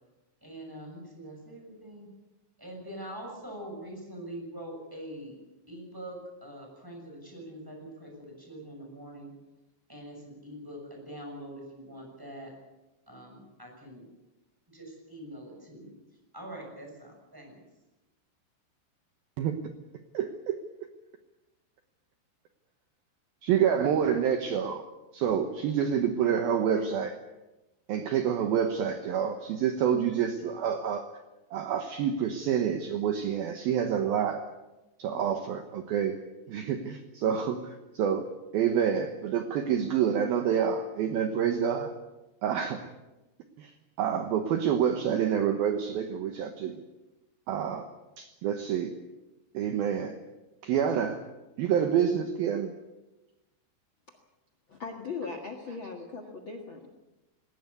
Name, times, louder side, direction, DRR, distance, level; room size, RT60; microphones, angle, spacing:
voice 1, 0.4-2.1 2.6-5.3 5.7-9.3 9.9-12.5 13.1-14.0 14.7-15.9 16.3-17.6 26.8-26.9, right 1 dB, 5° right, 1 dB, 6.4 m, -44 dB
voice 2, 20.1-20.6 23.4-24.8 25.1-27.2 27.9-31.1 31.5-34.4 35.0-36.2 36.5-41.9 42.4-42.8 43.6-43.7 44.0-46.8 47.5-47.9 48.2-49.0 49.5-50.2 50.6-51.2 51.6-52.7, right 8 dB, 70° right, 6 dB, 2.5 m, -28 dB
voice 3, 54.7-56.9, left 4 dB, 60° left, 2 dB, 1.3 m, -39 dB
20.5 x 18.0 x 8.2 m, 1.0 s
omnidirectional pair, 5.3 m